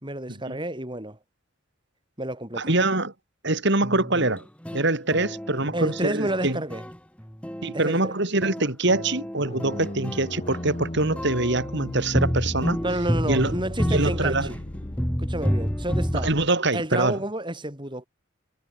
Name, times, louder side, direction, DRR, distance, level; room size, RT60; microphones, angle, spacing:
voice 1, 0.0-1.2 2.2-2.7 5.7-6.8 7.7-8.1 12.8-14.6 15.2-16.3 16.7-18.1, right 1 dB, 25° right, 5.5 m, -30 dB
voice 2, 2.6-3.1 3.4-4.5 4.7-6.6 7.6-12.8 13.3-13.5 13.9-14.5 16.1-17.2, right 2 dB, 60° right, 3.7 m, -24 dB
sound 1, 3.8-8.0 8.4-16.3, equal, 5° left, 2.7 m, -30 dB
sound 2, 9.4-16.5, left 1 dB, 30° left, 1.6 m, -36 dB
head